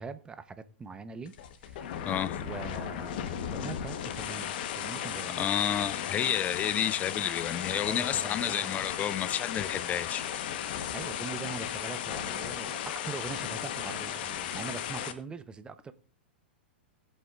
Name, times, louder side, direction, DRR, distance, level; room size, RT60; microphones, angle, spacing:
voice 1, 0.0-1.3 1.6-2.1 2.4-5.5 7.8-8.8 10.9-15.9, right 5 dB, 15° right, 0.9 m, -42 dB
sound 1, 1.2-15.1, left 10 dB, 55° left, 1.2 m, -35 dB
voice 2, 2.0-2.4 5.4-10.2, left 10 dB, 25° left, 0.5 m, -30 dB
19.5 x 8.1 x 2.5 m
hypercardioid pair, 105°, 6 cm